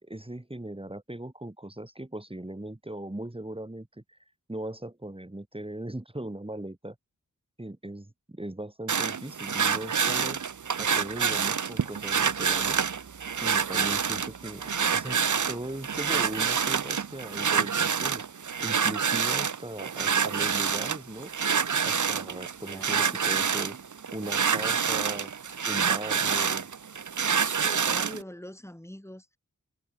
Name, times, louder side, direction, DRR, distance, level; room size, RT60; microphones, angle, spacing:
voice 1, 0.0-4.2 4.5-7.0 7.6-10.4 10.8-12.9 13.4-14.6 14.9-15.2 15.5-18.2 18.6-21.3 21.8-23.8 24.1-25.3 25.7-26.7, right 1 dB, 15° right, 3.5 m, -39 dB
sound 1, 8.9-28.2, right 6 dB, 65° right, 1.0 m, -27 dB
voice 2, 22.7-23.2 27.6-29.4, left 1 dB, 10° left, 6.3 m, -43 dB
wide cardioid pair, 70°, 33 cm